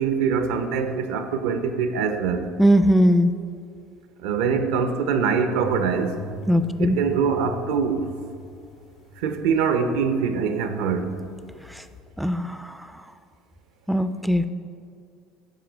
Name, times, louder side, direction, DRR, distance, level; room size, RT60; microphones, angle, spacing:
voice 1, 0.0-2.5 4.2-6.2 6.8-8.1 9.2-11.2, right 6 dB, 80° right, 0.5 m, -23 dB
voice 2, 2.6-3.3 6.5-7.0 12.2-12.7 13.9-14.5, equal, ahead, 0.3 m, -19 dB
sound 1, 5.6-10.6 10.9-12.0, left 4 dB, 65° left, 1.4 m, -40 dB
7.8 x 4.8 x 3.9 m
supercardioid pair, 95°, 0 cm